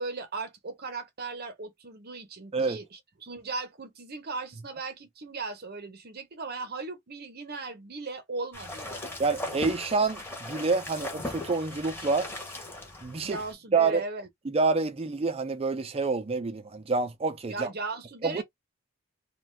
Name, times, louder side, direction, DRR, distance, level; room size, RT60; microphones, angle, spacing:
voice 1, 0.0-9.1 13.2-14.3 17.5-18.4, right 3 dB, 45° right, 0.7 m, -37 dB
sound 1, 8.5-13.5, left 1 dB, 10° left, 0.8 m, -38 dB
voice 2, 9.2-12.3 13.0-13.4 13.7-14.0 14.5-17.7 18.2-18.4, right 4 dB, 25° right, 0.4 m, -27 dB
2.5 x 2.2 x 3.1 m
head